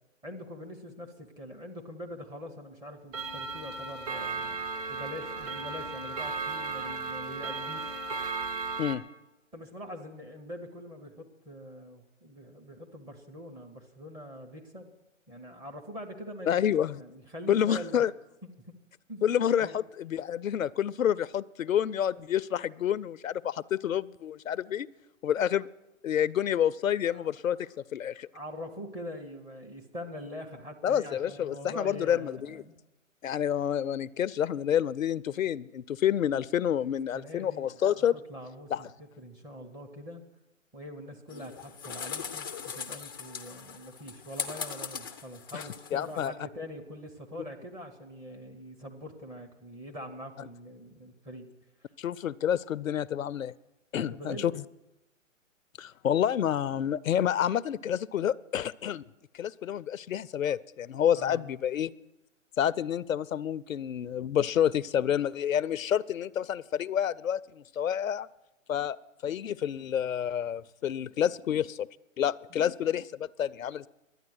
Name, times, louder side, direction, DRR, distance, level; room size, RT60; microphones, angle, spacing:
voice 1, 0.2-4.6 4.9-8.0 9.5-14.9 15.3-16.7 17.0-18.0 19.1-19.2 19.6-19.8 25.4-25.5 27.1-27.3 28.3-32.8 37.1-38.9 39.2-40.2 40.7-51.5 54.0-54.6 61.1-61.5 72.5-72.6, equal, 10° right, 3 dB, 0.8 m, -43 dB
Clock, 3.1-9.0, right 4 dB, 30° right, 1.2 m, -35 dB
voice 2, 16.5-17.0 17.5-18.1 19.2-24.9 25.2-25.7 26.0-28.3 30.8-32.6 33.2-38.1 38.7-38.8 45.5-45.6 45.9-46.3 52.0-53.5 53.9-54.6 55.8-59.0 59.3-61.9 62.6-68.3 68.7-69.0 69.2-71.9 72.2-73.9, left 9 dB, 90° left, 18 dB, 0.5 m, -28 dB
sound 1, 41.3-46.3, left 6 dB, 20° left, 0.4 m, -40 dB
12.0 x 9.4 x 7.8 m, 0.97 s
hypercardioid pair, 140°, 39 cm